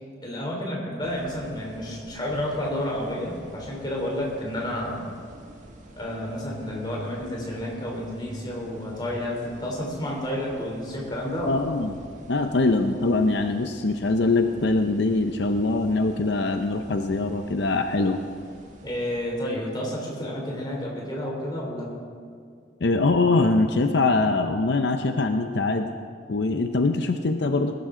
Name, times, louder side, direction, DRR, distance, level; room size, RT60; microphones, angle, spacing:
voice 1, 0.2-5.1 6.0-11.6 18.8-21.9, left 1 dB, 25° left, -2 dB, 3.2 m, -30 dB
sound 1, 1.0-19.2, right 1 dB, 40° right, 1.8 m, -48 dB
voice 2, 11.5-12.0 12.3-18.2 22.8-25.9 26.3-27.8, left 3 dB, 65° left, 7 dB, 0.6 m, -23 dB
20.0 x 12.0 x 3.8 m, 2.2 s
head